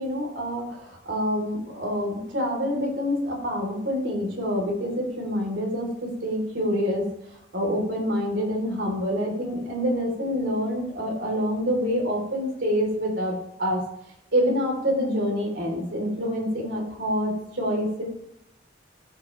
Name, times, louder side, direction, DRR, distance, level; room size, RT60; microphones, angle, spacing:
voice 1, 0.0-7.1 7.5-13.8 14.3-18.0, equal, 85° right, 0 dB, 3.4 m, -26 dB
13.5 x 6.0 x 3.2 m, 0.79 s
head